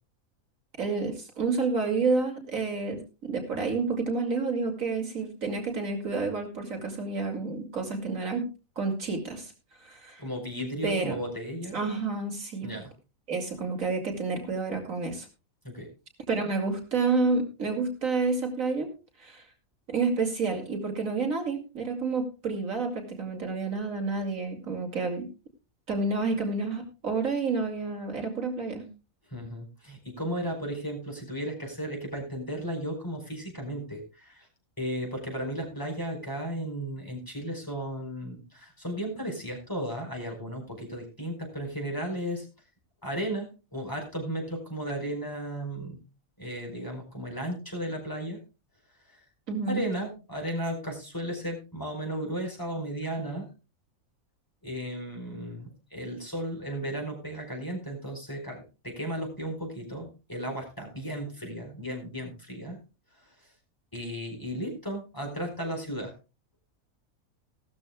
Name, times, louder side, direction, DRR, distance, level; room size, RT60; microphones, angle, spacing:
voice 1, 0.8-8.5 8.8-9.5 9.8-10.2 10.8-11.2 11.7-12.7 13.3-15.3 16.3-18.9 19.2-19.4 19.9-25.3 25.9-28.9 49.5-49.8, right 4 dB, 70° right, 3 dB, 2.9 m, -29 dB
voice 2, 10.2-11.8 12.6-12.9 15.6-15.9 29.3-34.5 34.8-42.5 43.0-46.0 46.4-48.4 49.1-49.2 49.7-53.5 54.6-62.8 63.4-63.5 63.9-66.1, equal, 15° left, 1 dB, 4.7 m, -35 dB
17.5 x 13.5 x 2.3 m, 0.30 s
omnidirectional pair, 1.5 m